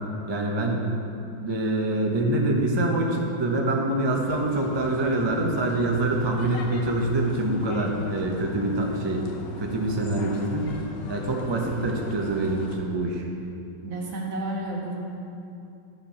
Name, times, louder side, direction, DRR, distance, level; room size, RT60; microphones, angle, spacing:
voice 1, 0.3-0.9 1.1-9.3 9.6-10.7 11.1-13.2, right 2 dB, 40° right, 0 dB, 0.4 m, -25 dB
sound 1, 4.1-12.8, left 3 dB, 65° left, 1.4 m, -40 dB
voice 2, 13.8-15.0, right 2 dB, 75° right, -2 dB, 2.2 m, -31 dB
10.0 x 6.7 x 5.6 m, 2.6 s
omnidirectional pair, 2.2 m